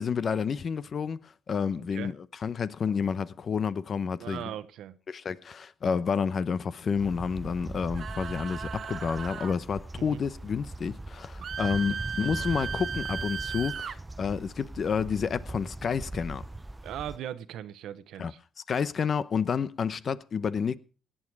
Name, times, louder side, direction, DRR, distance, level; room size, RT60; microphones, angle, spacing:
voice 1, 0.0-2.2 2.4-4.5 5.1-16.4 18.2-18.3 18.7-20.8, left 6 dB, 50° left, 0.9 m, -30 dB
voice 2, 1.7-2.1 4.2-5.0 10.0-10.2 11.8-12.0 16.8-18.4, right 11 dB, 85° right, 1.0 m, -39 dB
sound 1, 7.0-17.2, right 2 dB, 15° right, 0.6 m, -40 dB
sound 2, 7.9-9.6 11.4-14.0, right 7 dB, 55° right, 0.8 m, -36 dB
18.0 x 9.0 x 4.7 m
cardioid pair, 90°, 0 cm